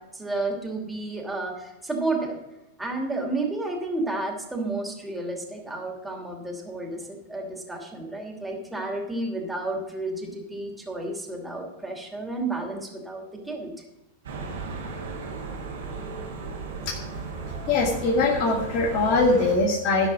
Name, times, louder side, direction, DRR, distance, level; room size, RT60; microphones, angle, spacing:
voice 1, 0.0-2.4 2.8-13.7, right 2 dB, 5° right, 0 dB, 2.9 m, -31 dB
sound 1, 14.2-19.5, right 4 dB, 80° right, 3.3 m, -35 dB
voice 2, 17.7-20.1, left 3 dB, 45° left, -1 dB, 2.3 m, -22 dB
12.0 x 5.3 x 7.5 m, 0.96 s
hypercardioid pair, 110°, 0 cm